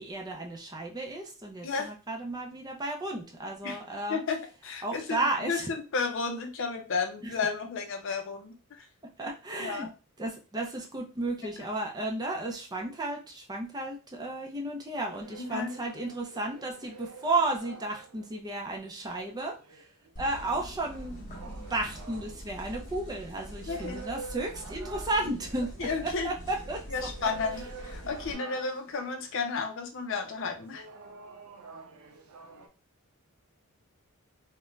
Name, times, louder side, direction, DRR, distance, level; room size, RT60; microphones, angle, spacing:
voice 1, 0.0-4.2 4.8-5.7 7.2-7.3 9.2-9.9 10.2-19.9 20.2-21.2 21.7-27.3, right 2 dB, 20° right, 1 dB, 0.4 m, -33 dB
voice 2, 4.1-5.2 5.5-8.9 9.6-9.9 15.4-15.7 23.7-24.0 25.8-26.3 26.9-30.8, left 4 dB, 60° left, 5 dB, 0.5 m, -32 dB
sound 1, 14.9-18.4 19.4-29.3 30.0-32.7, right 4 dB, 90° right, 0.5 m, -48 dB
sound 2, 20.2-28.3, equal, 35° left, 0.8 m, -44 dB
2.4 x 2.1 x 3.1 m, 0.32 s
head